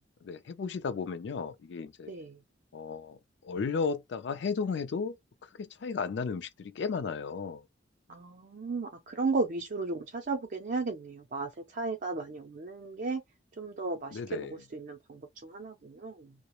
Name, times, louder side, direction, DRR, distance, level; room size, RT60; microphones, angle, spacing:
voice 1, 0.2-2.1 2.7-5.2 5.6-7.6 14.1-14.6, left 5 dB, 65° left, 0.4 m, -34 dB
voice 2, 2.1-2.4 8.1-13.2 13.6-16.3, right 3 dB, 50° right, 0.4 m, -35 dB
2.3 x 2.0 x 2.9 m
head